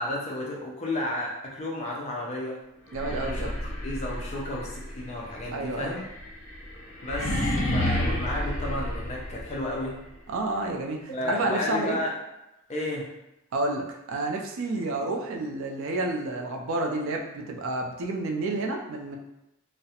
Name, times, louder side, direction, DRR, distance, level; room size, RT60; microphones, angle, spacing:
voice 1, 0.0-2.6 3.0-3.5 3.8-6.0 7.0-10.0 11.1-12.2 12.7-13.1, left 1 dB, 30° left, -3 dB, 0.4 m, -32 dB
sound 1, 2.9-9.8, left 1 dB, 60° left, 0.7 m, -31 dB
voice 2, 2.9-3.5 5.5-6.0 10.3-12.0 13.5-19.2, right 2 dB, 60° right, 1 dB, 0.3 m, -30 dB
2.3 x 2.0 x 2.7 m, 0.92 s
head